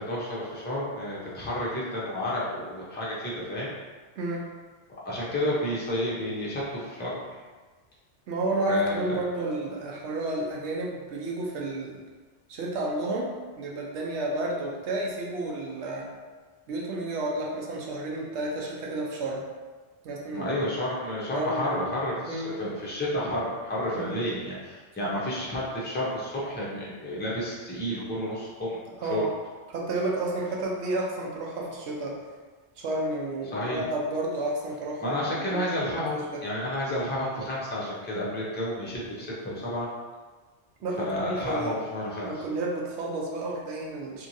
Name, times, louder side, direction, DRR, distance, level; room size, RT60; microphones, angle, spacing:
voice 1, 0.0-3.7 4.9-7.3 8.7-9.2 20.3-29.2 33.5-33.8 35.0-39.9 41.0-42.4, left 1 dB, 15° left, -6 dB, 0.3 m, -31 dB
voice 2, 8.3-12.0 12.5-16.1 16.7-19.4 20.0-20.6 21.3-21.9 22.3-22.6 23.9-24.1 25.0-25.1 29.0-29.3 29.7-32.2 32.8-35.6 36.0-36.1 36.3-36.4 40.8-41.8 42.2-44.3, right 2 dB, 75° right, -2 dB, 0.9 m, -31 dB
2.9 x 2.6 x 2.6 m, 1.4 s
omnidirectional pair, 1.2 m